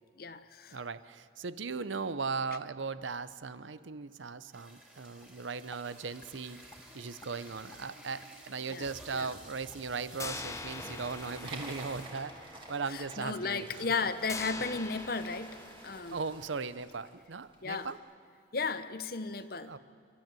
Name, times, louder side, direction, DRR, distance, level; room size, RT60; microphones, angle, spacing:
voice 1, 0.2-0.8 8.7-8.9 9.1-9.3 12.9-15.6 15.8-16.2 17.6-17.9 18.5-19.8, left 4 dB, 50° left, 12 dB, 0.9 m, -35 dB
voice 2, 0.7-6.7 6.9-13.8 16.1-18.0 19.7-19.8, right 4 dB, 85° right, 15 dB, 0.8 m, -38 dB
sound 1, 4.5-12.4 12.9-13.0 13.2-13.4 13.9-15.2, right 1 dB, 5° right, 3.2 m, -52 dB
sound 2, 5.2-5.3 5.7-5.8 6.2-6.4 6.7-6.8 7.2-7.3 7.7-7.8 8.2-8.3 8.7-8.8 9.2-9.3 9.7-9.8 10.2-16.9, left 3 dB, 15° left, 0.7 m, -45 dB
sound 3, 11.0-17.9, right 2 dB, 30° right, 2.8 m, -51 dB
30.0 x 12.5 x 9.1 m, 2.1 s
head